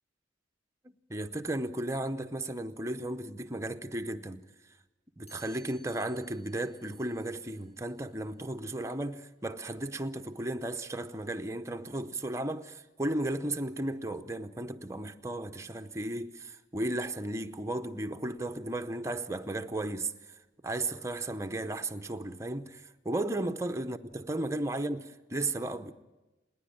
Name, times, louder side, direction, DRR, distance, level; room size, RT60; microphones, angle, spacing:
voice 1, 0.8-4.4 5.2-20.1 20.6-25.9, right 1 dB, 15° right, 0.7 m, -35 dB
Chime, 5.3-11.1, equal, 35° left, 5.1 m, -64 dB
30.0 x 10.5 x 8.5 m
head